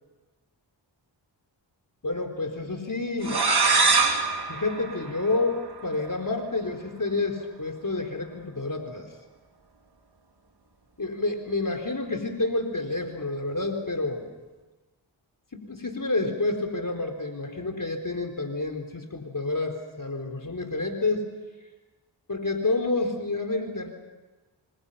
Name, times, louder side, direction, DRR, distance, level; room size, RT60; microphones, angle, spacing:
voice 1, 2.0-3.4 4.5-9.1 11.0-14.3 15.5-21.3 22.3-23.9, left 2 dB, 45° left, 4 dB, 4.2 m, -29 dB
sound 1, 3.2-5.8, right 4 dB, 55° right, 3.9 m, -24 dB
27.0 x 26.5 x 5.8 m, 1.2 s
cardioid pair, 50°, 47 cm